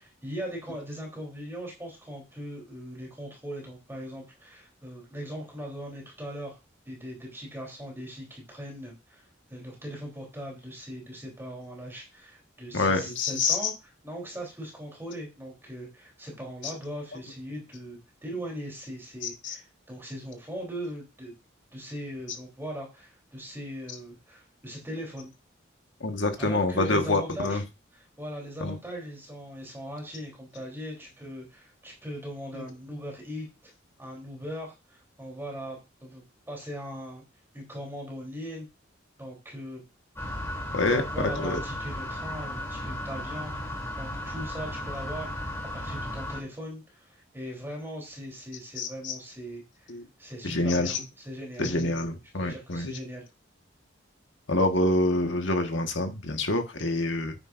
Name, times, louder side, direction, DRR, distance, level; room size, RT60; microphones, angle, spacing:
voice 1, 0.0-6.6 6.9-9.2 9.5-13.7 14.0-21.3 21.7-25.3 26.4-27.6 27.9-33.7 34.0-37.2 37.5-38.7 39.2-39.8 40.9-49.9 50.2-51.8 52.4-53.2, equal, 10° right, -1 dB, 3.6 m, -39 dB
voice 2, 12.7-13.7 19.4-19.5 26.0-27.6 28.6-28.8 32.5-32.6 40.7-41.0 41.4-41.6 48.8-49.1 49.9-50.0 50.4-51.0 51.6-53.0 54.5-57.3, left 2 dB, 70° left, 5 dB, 1.6 m, -26 dB
sound 1, 40.1-46.4, left 1 dB, 15° left, 3.2 m, -35 dB
9.8 x 9.4 x 2.6 m, 0.26 s
head